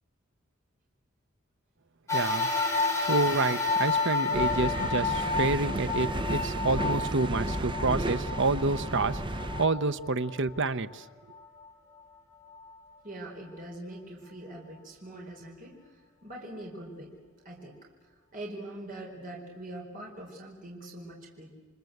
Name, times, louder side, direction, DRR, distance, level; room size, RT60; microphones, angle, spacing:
sound 1, 2.1-10.7 11.3-11.4 12.5-12.6, left 4 dB, 15° left, 5.0 m, -31 dB
voice 1, 2.1-2.5 3.0-9.2 9.6-11.0, right 3 dB, 60° right, 12 dB, 1.0 m, -28 dB
sound 2, 4.3-9.7, right 1 dB, 25° right, 0.9 m, -33 dB
voice 2, 13.0-17.1 17.4-17.7 18.3-21.5, right 1 dB, 40° right, 0 dB, 4.5 m, -43 dB
28.5 x 24.0 x 8.1 m, 1.5 s
head